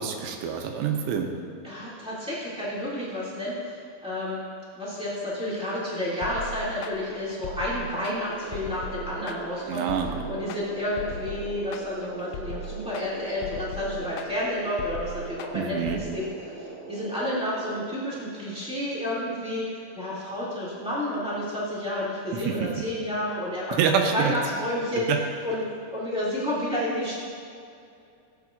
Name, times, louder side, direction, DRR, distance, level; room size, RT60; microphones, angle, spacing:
voice 1, 0.0-1.3 9.7-10.2 15.5-16.0 22.5-22.7 23.8-24.4 25.1-25.2, right 7 dB, 85° right, 4 dB, 2.8 m, -26 dB
voice 2, 1.6-4.4 4.8-23.8 24.1-25.1 25.4-25.6 25.9-27.1, left 1 dB, 5° right, -10 dB, 0.6 m, -30 dB
sound 1, 6.2-16.0, left 2 dB, 90° left, 2.2 m, -38 dB
sound 2, 8.1-17.9, right 3 dB, 55° right, 1.8 m, -41 dB
17.0 x 8.2 x 2.5 m, 2.5 s
omnidirectional pair, 5.0 m